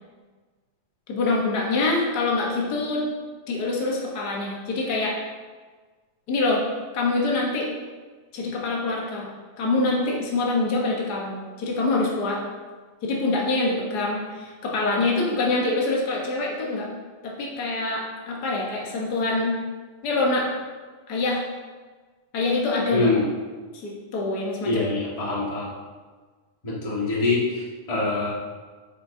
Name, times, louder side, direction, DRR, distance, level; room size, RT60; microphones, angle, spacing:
voice 1, 1.1-3.0 3.5-5.2 6.3-6.6 6.9-7.7 8.3-9.3 9.6-12.4 13.0-16.9 17.2-19.6 20.0-20.5 21.1-21.4 22.3-23.1 23.7-24.9 25.2-25.3, left 2 dB, 85° left, -2 dB, 0.8 m, -25 dB
voice 2, 22.9-23.3 24.6-25.7 26.6-28.3, left 3 dB, 25° left, -6 dB, 0.8 m, -24 dB
8.9 x 6.7 x 2.7 m, 1.4 s
omnidirectional pair, 3.6 m